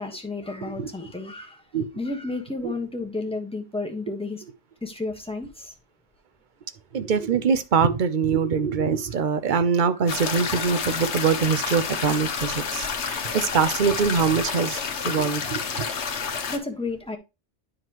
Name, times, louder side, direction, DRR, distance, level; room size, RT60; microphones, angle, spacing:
voice 1, 0.0-1.6 1.9-4.4 4.8-5.7 9.5-9.6 16.5-17.2, left 3 dB, 5° left, 1.2 m, -32 dB
voice 2, 6.9-14.8 15.0-15.6, right 6 dB, 50° right, 0.8 m, -23 dB
sound 1, 10.1-16.6, left 6 dB, 75° left, 1.2 m, -29 dB
9.5 x 5.0 x 3.0 m
omnidirectional pair, 1.2 m